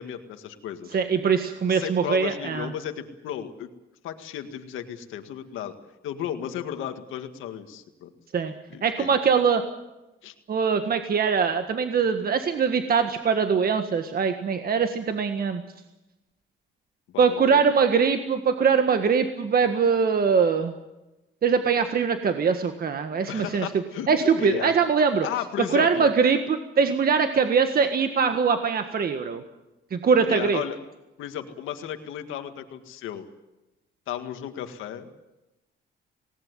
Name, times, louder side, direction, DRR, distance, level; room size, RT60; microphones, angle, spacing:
voice 1, 0.0-1.0 1.7-3.7 4.0-5.7 6.0-8.1 8.7-9.1 10.2-10.3 17.1-17.8 23.3-24.8 25.2-26.1 30.3-30.8 31.2-33.2 34.1-35.1, left 10 dB, 90° left, 7 dB, 1.8 m, -34 dB
voice 2, 0.9-2.7 8.3-8.5 8.8-9.6 10.5-15.6 17.2-20.7 21.4-23.7 24.1-25.3 25.7-29.4 29.9-30.6, right 6 dB, 50° right, 7 dB, 1.6 m, -22 dB
19.0 x 18.5 x 9.6 m, 0.99 s
cardioid pair, 90°, 20 cm